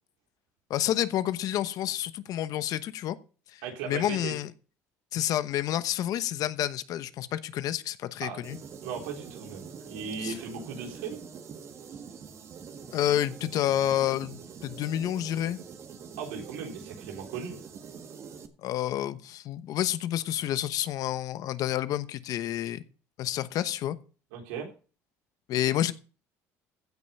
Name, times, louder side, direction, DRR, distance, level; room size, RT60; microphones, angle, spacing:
voice 1, 0.7-3.2 3.5-4.5 5.1-8.6 10.2-10.4 12.9-15.6 18.6-22.8 23.2-24.0 25.5-25.9, left 12 dB, 60° left, 14 dB, 1.0 m, -29 dB
voice 2, 3.6-4.3 8.2-8.4 8.8-11.2 16.2-17.6 24.3-24.7, right 6 dB, 90° right, 2 dB, 3.7 m, -37 dB
sound 1, 8.4-18.5, right 6 dB, 45° right, 1.6 m, -45 dB
15.5 x 5.5 x 5.5 m, 0.36 s
supercardioid pair, 100°, 7 cm